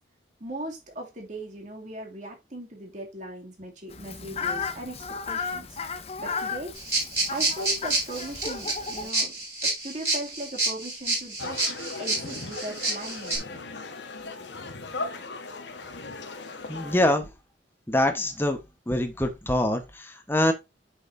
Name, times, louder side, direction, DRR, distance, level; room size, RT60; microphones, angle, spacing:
voice 1, 0.4-5.0 5.3-5.8 6.2-6.7 7.3-9.3 9.6-11.6 12.0-13.7, right 1 dB, 40° right, 2.6 m, -38 dB
Fowl, 3.9-9.1, left 5 dB, 35° left, 0.8 m, -34 dB
sound 1, 6.8-13.4, right 2 dB, 15° right, 4.4 m, -29 dB
sound 2, 11.4-17.1, left 3 dB, 80° left, 1.4 m, -37 dB
voice 2, 16.7-17.3 17.9-18.6 18.9-20.5, left 1 dB, 10° left, 1.2 m, -24 dB
8.1 x 6.4 x 2.7 m
head